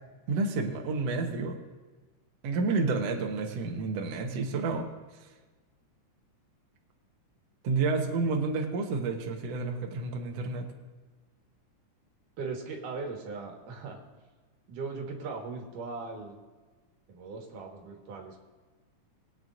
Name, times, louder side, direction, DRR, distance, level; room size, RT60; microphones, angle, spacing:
voice 1, 0.3-1.6 2.4-4.9 7.6-10.7, right 3 dB, 60° right, 2 dB, 2.1 m, -30 dB
voice 2, 12.4-14.0 14.7-16.4 17.1-18.4, right 4 dB, 90° right, 1 dB, 3.2 m, -39 dB
21.0 x 9.3 x 2.6 m, 1.3 s
omnidirectional pair, 3.6 m